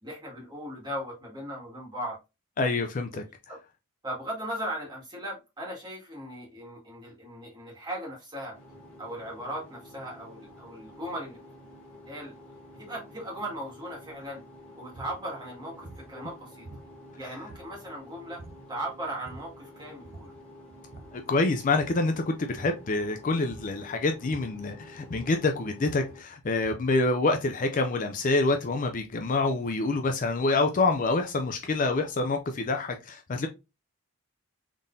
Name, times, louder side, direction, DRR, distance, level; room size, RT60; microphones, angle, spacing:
voice 1, 0.0-2.2 3.5-3.6 4.0-8.5 9.0-11.4 12.1-12.3 12.7-14.4 14.8-16.7 17.1-18.4 18.7-20.4, right 1 dB, 20° right, 1.9 m, -38 dB
voice 2, 2.6-3.2 17.2-17.3 21.1-33.5, left 3 dB, 35° left, 0.4 m, -27 dB
sound 1, 8.5-26.2, left 1 dB, 5° left, 1.3 m, -50 dB
sound 2, 15.0-15.2 15.8-16.1 16.6-17.2 17.5-18.0 18.4-18.7 19.1-19.6 20.0-20.4 20.7-21.3 21.7-22.1 22.5-22.9 23.5-23.8 24.3-24.7 25.0-27.0, right 2 dB, 45° right, 0.6 m, -47 dB
3.7 x 3.7 x 2.6 m
head